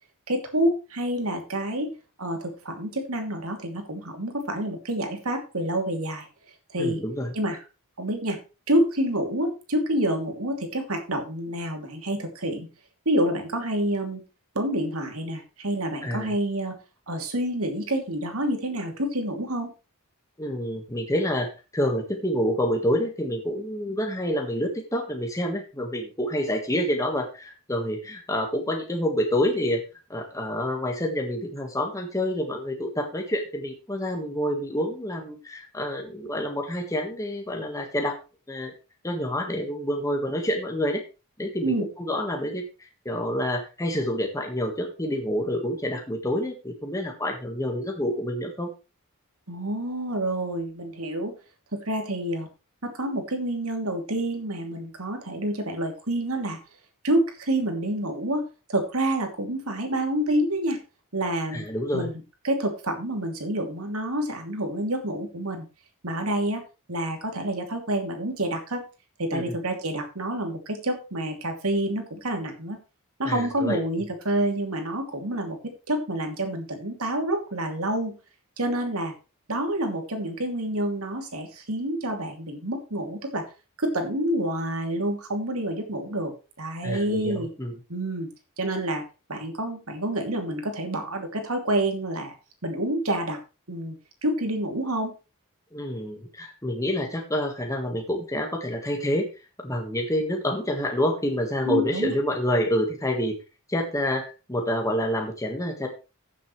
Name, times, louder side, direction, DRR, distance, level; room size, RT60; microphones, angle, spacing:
voice 1, 0.3-1.9 2.2-6.3 6.7-7.0 7.3-7.6 8.0-8.4 8.7-12.7 13.0-14.2 14.5-16.7 17.1-19.7 41.6-41.9 49.5-51.3 51.7-52.5 52.8-56.6 57.0-60.8 61.1-61.7 61.9-62.1 62.4-65.7 66.0-66.6 66.9-68.8 69.2-72.8 73.2-78.1 78.6-79.1 79.5-83.5 83.8-87.5 87.9-88.3 88.6-89.0 89.3-92.3 92.6-93.4 93.7-93.9 94.2-95.1 101.7-102.1, right 1 dB, 75° right, 4 dB, 2.9 m, -28 dB
voice 2, 6.8-7.3 16.0-16.3 20.4-29.8 30.1-38.2 38.5-38.7 39.0-41.0 41.4-48.7 61.5-62.1 69.3-69.5 73.2-73.8 86.8-87.7 95.7-99.3 99.6-103.4 103.7-105.9, equal, 15° left, 2 dB, 1.6 m, -28 dB
15.0 x 7.6 x 3.2 m, 0.31 s
head